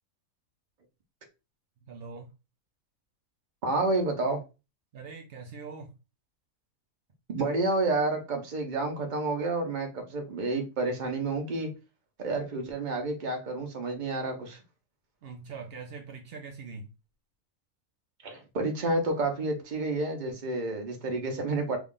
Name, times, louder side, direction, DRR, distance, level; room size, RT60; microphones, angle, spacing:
voice 1, 1.8-2.3 4.9-5.9 15.2-16.9, right 4 dB, 70° right, 0.5 m, -42 dB
voice 2, 3.6-4.4 7.3-11.7 12.2-14.6 18.2-21.8, right 2 dB, 40° right, 0.8 m, -29 dB
3.6 x 2.4 x 3.7 m
omnidirectional pair, 1.5 m